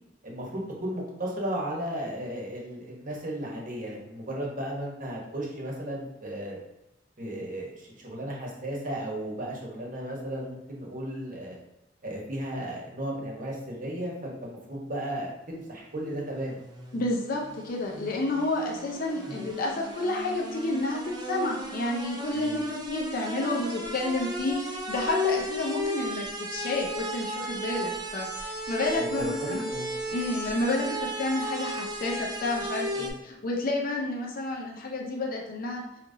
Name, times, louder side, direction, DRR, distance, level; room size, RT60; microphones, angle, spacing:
voice 1, 0.2-6.6 7.2-11.6 12.0-16.6 19.3-19.5 22.3-22.6 29.0-29.9 33.0-33.1, right 1 dB, 45° right, -2 dB, 1.1 m, -35 dB
sound 1, 16.4-33.1, equal, 20° right, 0.6 m, -35 dB
voice 2, 16.9-29.7 30.1-35.8, left 2 dB, 50° left, -1 dB, 0.5 m, -30 dB
4.9 x 2.9 x 2.7 m, 0.89 s
head